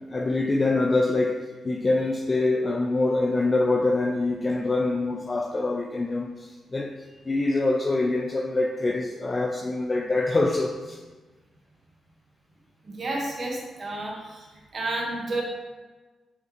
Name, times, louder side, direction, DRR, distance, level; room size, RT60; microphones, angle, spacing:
voice 1, 0.0-7.0 7.3-11.0, left 2 dB, 35° left, 0.6 m, -25 dB
voice 2, 12.9-14.4 14.7-15.4, right 2 dB, 50° right, 1.9 m, -31 dB
6.4 x 6.0 x 3.3 m
hypercardioid pair, 45°, 0 cm